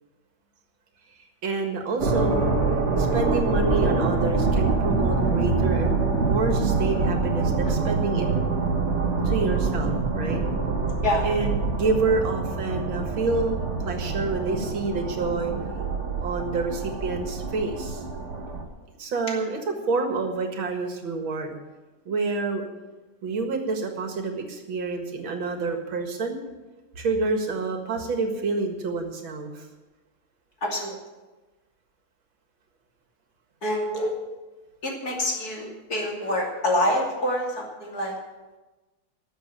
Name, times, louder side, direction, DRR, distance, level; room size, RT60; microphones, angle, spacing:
voice 1, 1.4-2.5 3.0-8.3 9.2-10.4 11.2-13.6 13.8-15.5 16.2-18.0 19.0-21.5 22.1-22.7 23.2-26.4 27.0-29.7, right 3 dB, 85° right, 5 dB, 2.5 m, -28 dB
sound 1, 2.0-18.6, right 3 dB, 40° right, 1.8 m, -25 dB
voice 2, 30.6-31.0 33.6-34.1 34.8-38.1, left 1 dB, 50° left, -1 dB, 3.2 m, -26 dB
13.0 x 7.4 x 9.9 m, 1.2 s
omnidirectional pair, 2.1 m